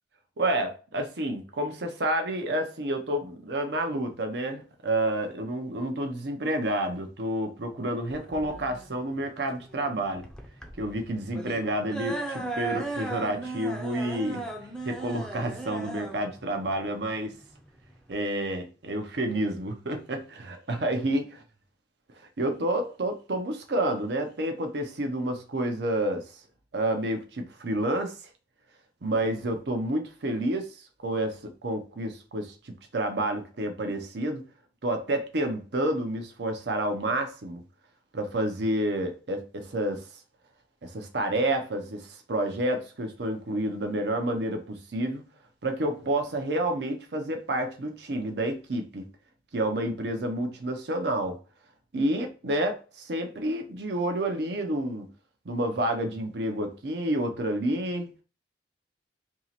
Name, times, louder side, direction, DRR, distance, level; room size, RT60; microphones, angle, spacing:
voice 1, 0.4-10.3 10.8-14.4 14.8-17.3 18.1-21.4 22.4-26.2 26.7-28.1 29.0-34.4 34.8-37.6 38.1-40.0 40.8-45.2 45.6-49.0 49.5-51.4 51.9-55.1 55.5-58.1, right 1 dB, 70° right, 0.7 m, -29 dB
sound 1, 8.1-18.1, right 2 dB, 5° left, 0.5 m, -37 dB
2.9 x 2.8 x 4.2 m
head